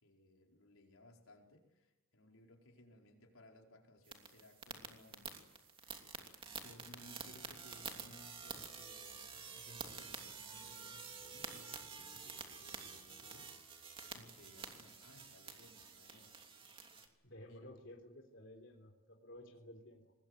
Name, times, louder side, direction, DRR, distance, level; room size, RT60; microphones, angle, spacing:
voice 1, 0.0-5.3 6.2-16.3 17.1-17.6, left 1 dB, 75° left, 1 dB, 4.7 m, -62 dB
sound 1, 4.0-17.1, right 5 dB, 25° right, 2.9 m, -49 dB
voice 2, 17.2-20.1, left 1 dB, 55° left, 1 dB, 3.8 m, -54 dB
25.5 x 21.0 x 8.2 m, 1.0 s
head